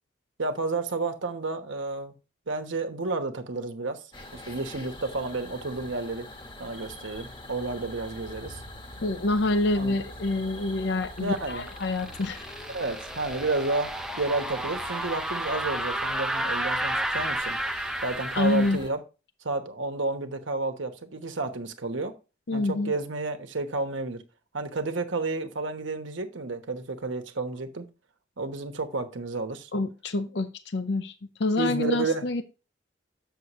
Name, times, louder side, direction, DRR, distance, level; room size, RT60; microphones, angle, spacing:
voice 1, 0.4-2.1 2.5-4.0 4.3-6.3 6.6-8.6 9.7-10.0 11.2-11.7 12.7-13.9 14.2-17.6 18.0-19.0 19.4-22.1 22.5-24.2 24.5-27.9 28.4-29.7 31.6-32.2, right 3 dB, 80° right, 1.1 m, -31 dB
sound 1, 4.1-18.9, left 1 dB, 25° left, 1.1 m, -44 dB
voice 2, 9.0-12.5 18.3-18.8 22.5-22.9 29.7-32.4, left 2 dB, 60° left, 0.6 m, -27 dB
sound 2, 11.0-18.8, right 1 dB, 5° right, 0.5 m, -32 dB
8.1 x 6.6 x 3.0 m
head